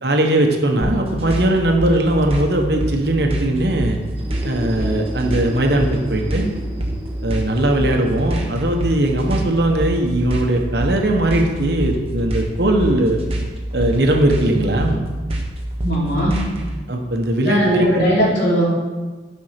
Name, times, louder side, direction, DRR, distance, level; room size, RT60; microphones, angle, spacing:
voice 1, 0.0-4.0 4.4-6.5 7.2-13.2 13.7-15.0 16.9-18.3, right 1 dB, 60° right, 2 dB, 1.2 m, -19 dB
sound 1, 0.8-16.7, right 1 dB, 30° right, 1.2 m, -26 dB
sound 2, 4.0-11.7, equal, 10° right, 1.7 m, -36 dB
voice 2, 15.8-16.3 17.4-18.7, equal, 65° left, -5 dB, 3.1 m, -19 dB
9.5 x 5.6 x 5.8 m, 1.3 s
head